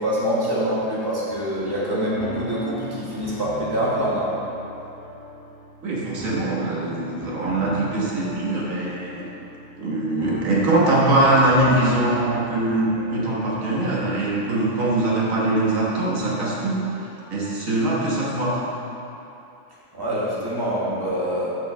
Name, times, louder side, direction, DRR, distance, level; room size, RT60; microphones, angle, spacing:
voice 1, 0.0-4.3 19.9-21.5, equal, 15° right, -8 dB, 1.7 m, -25 dB
sound 1, 1.3-17.6, right 1 dB, 10° left, 1.7 m, -39 dB
voice 2, 5.8-9.2 9.8-16.8 17.3-18.6, right 2 dB, 90° right, -5 dB, 1.7 m, -22 dB
7.0 x 4.3 x 6.8 m, 2.8 s
omnidirectional pair, 1.4 m